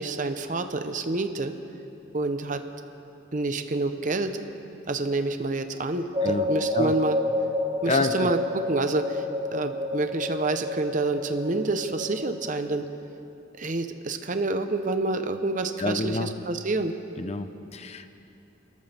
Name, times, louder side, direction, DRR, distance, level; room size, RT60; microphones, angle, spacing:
voice 1, 0.0-1.5 2.1-2.6 3.3-4.4 4.9-7.2 7.8-9.2 9.5-12.9 13.6-17.0, right 2 dB, 40° right, 8 dB, 0.8 m, -28 dB
sound 1, 6.1-12.6, left 1 dB, 25° right, 1.5 m, -30 dB
voice 2, 6.2-6.9 7.9-8.3 15.8-16.3 17.2-18.1, left 3 dB, 30° left, 9 dB, 0.6 m, -28 dB
29.5 x 14.0 x 3.5 m, 2.9 s
head